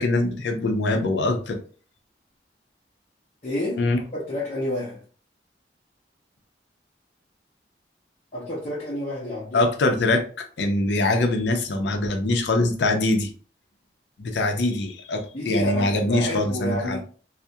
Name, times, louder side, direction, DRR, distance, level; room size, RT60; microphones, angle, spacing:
voice 1, 0.0-1.6 3.8-4.0 9.5-13.3 14.2-17.0, left 2 dB, 80° left, 0.5 m, -23 dB
voice 2, 3.4-3.8 4.1-5.0 8.3-9.6 15.3-17.0, left 1 dB, 40° left, 0.6 m, -29 dB
2.3 x 2.0 x 2.6 m
head